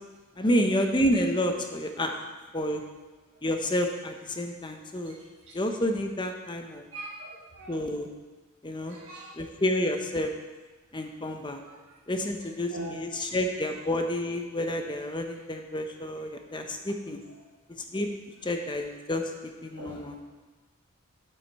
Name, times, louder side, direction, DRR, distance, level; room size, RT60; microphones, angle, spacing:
voice 1, 0.4-2.2 2.5-2.8 3.4-5.2 5.5-6.8 7.7-8.1 8.6-9.0 9.4-10.3 10.9-11.6 12.1-17.2 17.9-18.1 18.4-19.2 19.6-20.2, equal, 20° left, 4 dB, 0.7 m, -29 dB
voice 2, 6.9-7.8 8.9-9.3 11.6-11.8 12.7-13.0 19.8-20.0, right 1 dB, 60° right, -5 dB, 1.4 m, -40 dB
8.9 x 7.9 x 4.2 m, 1.2 s
head